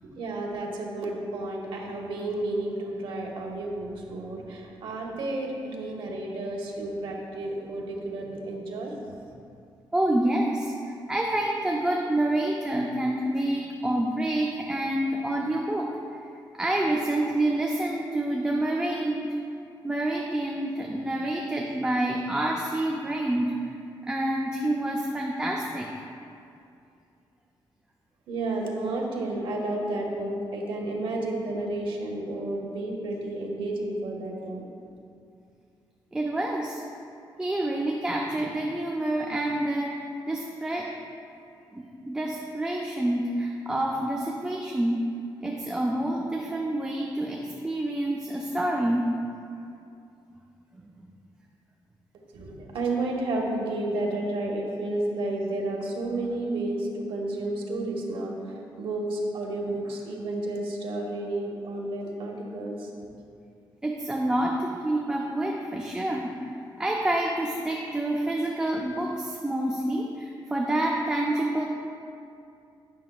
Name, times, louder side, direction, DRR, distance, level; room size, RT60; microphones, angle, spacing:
voice 1, 0.0-9.2 28.3-34.6 52.3-62.9, right 2 dB, 80° right, -1 dB, 1.0 m, -31 dB
voice 2, 9.9-19.3 19.8-23.8 24.0-25.9 36.1-36.8 37.4-40.9 41.7-45.0 45.4-49.1 50.8-50.9 63.8-71.6, right 1 dB, 10° right, -1 dB, 0.4 m, -28 dB
9.2 x 5.9 x 2.3 m, 2.5 s
wide cardioid pair, 170°, 9 cm